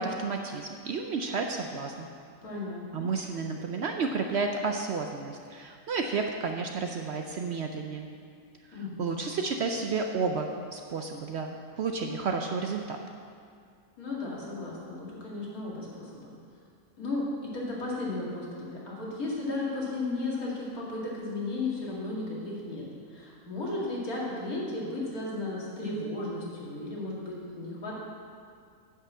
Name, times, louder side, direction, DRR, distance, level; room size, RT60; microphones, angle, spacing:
voice 1, 0.0-2.1 2.9-8.1 9.0-13.0, right 4 dB, 60° right, 4 dB, 0.7 m, -31 dB
voice 2, 2.4-3.0 8.7-9.1 14.0-16.3 17.0-17.2 17.5-22.8 23.1-27.9, left 2 dB, 80° left, -5 dB, 2.5 m, -34 dB
9.6 x 5.6 x 7.3 m, 2.2 s
omnidirectional pair, 1.5 m